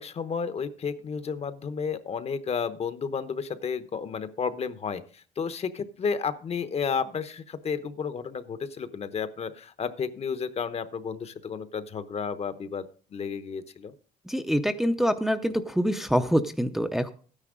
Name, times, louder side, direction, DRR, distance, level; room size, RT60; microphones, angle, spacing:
voice 1, 0.0-13.9, left 6 dB, 40° left, 12 dB, 0.9 m, -32 dB
voice 2, 14.3-17.1, equal, ahead, 7 dB, 0.6 m, -25 dB
12.5 x 9.8 x 3.8 m, 0.40 s
cardioid pair, 110°, 17 cm